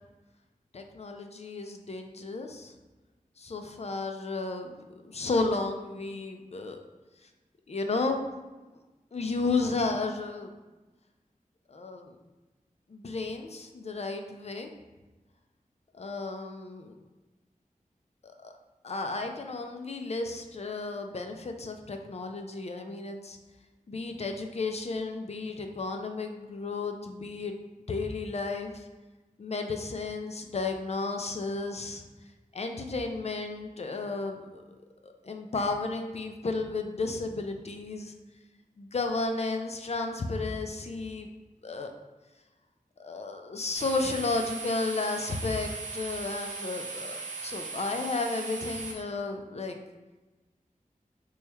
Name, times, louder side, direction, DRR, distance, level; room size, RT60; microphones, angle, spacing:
voice 1, 0.7-2.7 3.4-4.7 5.0-6.8 7.7-8.2 9.1-10.5 11.7-12.2 12.9-14.7 15.9-16.9 18.2-18.5 18.8-23.4 23.9-28.8 29.4-32.0 32.5-34.6 35.0-38.1 38.8-41.3 41.6-41.9 43.0-49.8, left 3 dB, 50° left, 4 dB, 0.4 m, -33 dB
sound 1, 43.7-48.9, right 4 dB, 60° right, 0.8 m, -38 dB
3.1 x 2.3 x 4.2 m, 1.2 s
wide cardioid pair, 55°, 14 cm